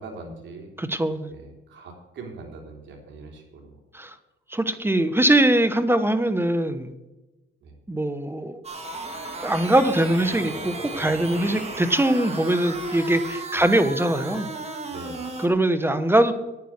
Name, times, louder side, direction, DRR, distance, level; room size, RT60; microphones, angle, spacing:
voice 1, 0.0-0.8 1.3-3.8 7.6-7.8 13.5-13.7 14.9-15.3, right 3 dB, 70° right, 2 dB, 3.5 m, -42 dB
voice 2, 0.8-1.3 3.9-4.1 4.5-6.9 7.9-8.6 9.4-14.5 15.4-16.3, right 1 dB, 10° right, 11 dB, 1.1 m, -22 dB
sound 1, 8.6-15.5, right 2 dB, 30° right, 2.6 m, -35 dB
10.0 x 9.6 x 6.5 m, 1.0 s
cardioid pair, 90°, 20 cm